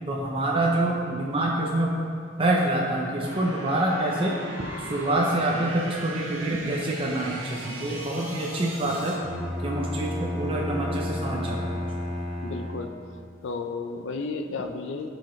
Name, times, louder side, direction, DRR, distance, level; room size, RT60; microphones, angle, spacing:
voice 1, 0.1-2.0 2.4-4.3 4.9-9.2 9.6-11.8, right 1 dB, 30° right, -2 dB, 0.6 m, -26 dB
sound 1, 3.2-9.2, right 1 dB, 75° right, 1.8 m, -38 dB
Bowed string instrument, 9.2-13.2, left 1 dB, ahead, 0.9 m, -32 dB
voice 2, 12.4-13.0 13.4-15.1, left 4 dB, 75° left, 6 dB, 0.5 m, -32 dB
13.0 x 4.9 x 3.1 m, 2.3 s
head